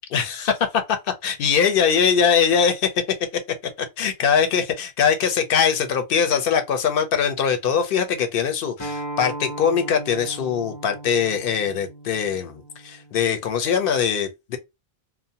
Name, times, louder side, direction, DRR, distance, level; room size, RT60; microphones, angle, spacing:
voice 1, 0.1-0.5 1.2-2.9 4.0-14.6, left 7 dB, 65° left, 0.7 m, -22 dB
Acoustic guitar, 8.8-14.0, right 1 dB, 25° left, 0.5 m, -37 dB
2.6 x 2.1 x 2.7 m
omnidirectional pair, 1.1 m